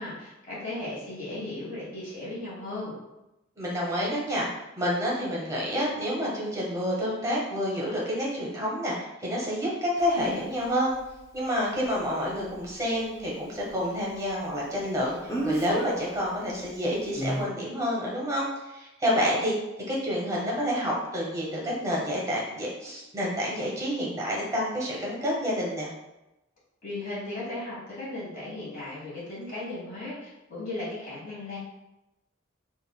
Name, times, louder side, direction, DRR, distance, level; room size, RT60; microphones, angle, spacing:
voice 1, 0.0-2.9 26.8-31.6, left 2 dB, 45° left, -8 dB, 1.5 m, -36 dB
voice 2, 3.6-11.0 11.3-19.5 19.9-25.9, equal, 15° right, -4 dB, 0.8 m, -29 dB
Speech, 10.0-10.1 15.3-15.9 17.1-17.4, right 1 dB, 15° left, 0.6 m, -28 dB
3.6 x 2.4 x 2.2 m, 0.95 s
head